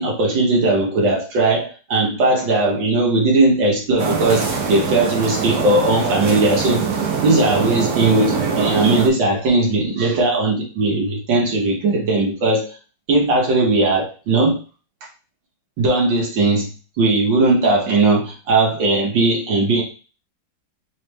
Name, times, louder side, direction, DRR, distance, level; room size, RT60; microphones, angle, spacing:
voice 1, 0.0-6.9 7.2-12.8 13.1-14.6 15.8-16.7 17.0-19.8, right 2 dB, 75° right, -2 dB, 1.8 m, -18 dB
sound 1, 4.0-9.1, right 5 dB, 60° right, 1.2 m, -23 dB
4.2 x 3.1 x 3.3 m, 0.36 s
omnidirectional pair, 2.0 m